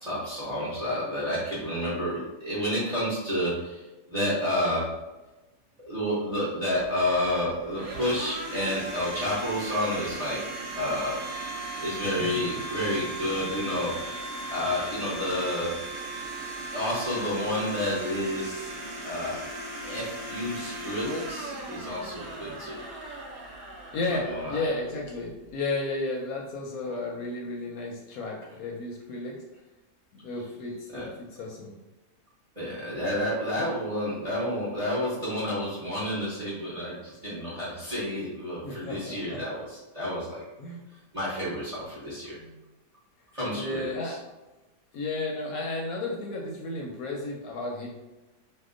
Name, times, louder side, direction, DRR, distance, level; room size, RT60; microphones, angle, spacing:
voice 1, 0.0-3.8 4.1-4.9 5.9-10.4 10.7-11.2 11.8-13.9 14.5-15.7 16.7-18.7 19.0-19.4 19.8-22.8 24.1-24.6 30.9-31.0 32.6-39.6 39.9-40.4 41.1-42.4 43.3-44.1, left 1 dB, 35° right, -8 dB, 0.7 m, -30 dB
Domestic sounds home sounds, 6.7-25.6, right 2 dB, 65° right, 1.1 m, -38 dB
voice 2, 12.0-12.5 22.5-22.8 23.9-29.4 30.2-31.8 38.6-39.4 40.6-40.8 42.4-42.6 43.5-44.2 44.9-47.9, left 2 dB, 70° left, -1 dB, 0.9 m, -33 dB
2.8 x 2.2 x 3.6 m, 1.1 s
omnidirectional pair, 1.8 m